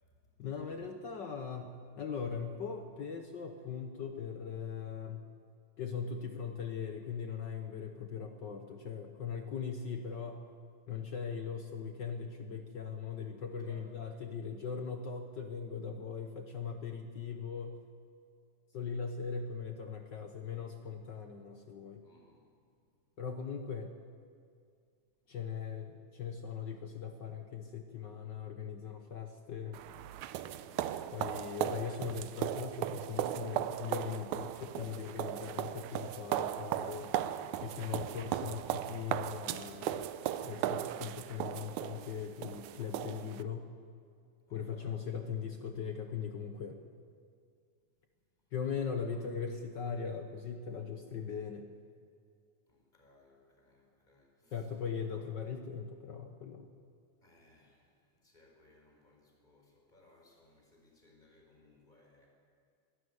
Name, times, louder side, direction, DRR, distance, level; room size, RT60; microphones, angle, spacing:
voice 1, 0.4-1.7 2.0-5.2 5.8-10.4 10.9-17.7 18.7-22.0 23.2-23.9 25.3-29.8 31.1-37.1 37.6-40.0 40.4-43.7 44.5-46.8 48.5-51.7 54.5-56.7, left 6 dB, 65° left, 5 dB, 1.1 m, -40 dB
voice 2, 13.6-14.0 22.0-22.8 30.5-31.0 44.5-45.0 45.7-45.8 49.1-49.2 52.7-54.7 55.1-55.3 57.2-62.3, left 2 dB, 15° left, 0 dB, 4.4 m, -64 dB
sound 1, 29.7-43.4, right 12 dB, 85° right, 2.1 m, -37 dB
24.0 x 13.0 x 9.7 m, 2.2 s
omnidirectional pair, 3.3 m